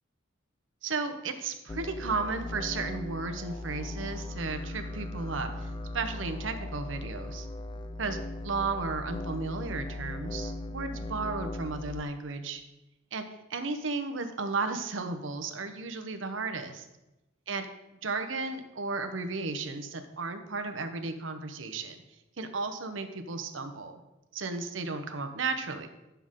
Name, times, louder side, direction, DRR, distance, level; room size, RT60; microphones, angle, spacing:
voice 1, 0.8-5.7 5.9-7.5 8.0-12.6 13.1-13.2 13.5-16.9 17.5-17.7 18.0-22.0 22.4-24.0 24.3-25.9, right 3 dB, 70° right, 6 dB, 0.9 m, -34 dB
sound 1, 1.7-12.0, left 2 dB, 25° left, 0.4 m, -38 dB
9.5 x 6.8 x 3.7 m, 0.99 s
head